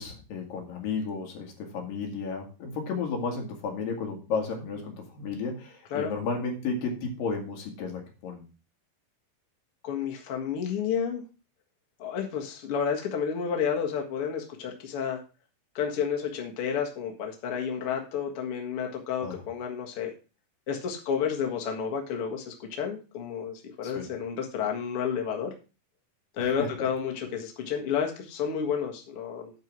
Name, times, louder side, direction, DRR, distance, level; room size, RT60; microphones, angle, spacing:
voice 1, 0.0-8.4 19.2-19.3 23.8-24.1 26.4-26.7, left 4 dB, 75° left, 2 dB, 3.6 m, -33 dB
voice 2, 9.8-11.2 12.0-15.2 15.8-20.1 20.7-25.5 26.4-29.5, left 7 dB, 50° left, 2 dB, 2.0 m, -31 dB
9.2 x 4.7 x 6.1 m, 0.32 s
omnidirectional pair, 4.0 m